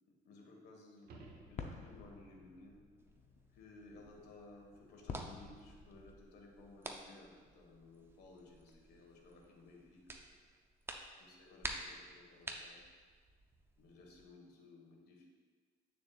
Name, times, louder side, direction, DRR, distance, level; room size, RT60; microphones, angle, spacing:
voice 1, 0.1-2.8 3.5-10.2 11.2-12.8 13.8-15.2, left 2 dB, 75° left, 0 dB, 1.4 m, -58 dB
sound 1, 1.0-2.2 7.1-7.2, right 2 dB, 65° right, 1.1 m, -57 dB
sound 2, 1.2-6.2, left 5 dB, 40° left, 0.7 m, -51 dB
sound 3, 3.0-14.3, right 2 dB, 15° right, 0.6 m, -51 dB
8.2 x 6.8 x 2.4 m, 1.5 s
cardioid pair, 110°, 17 cm